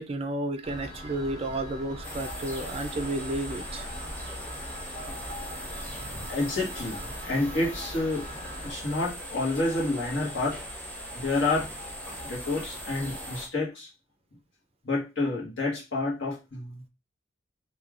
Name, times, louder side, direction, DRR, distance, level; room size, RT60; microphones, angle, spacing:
voice 1, 0.0-3.9 5.9-6.3 11.1-11.2, right 1 dB, 30° right, 8 dB, 0.3 m, -32 dB
sound 1, 0.6-8.7, equal, 45° left, 1.2 m, -41 dB
sound 2, 2.0-13.5, equal, 10° left, 1.1 m, -40 dB
voice 2, 6.3-8.3 8.6-10.6 11.1-11.7 12.2-13.9 14.8-16.8, left 2 dB, 75° left, -4 dB, 1.4 m, -29 dB
3.2 x 2.7 x 2.4 m, 0.26 s
head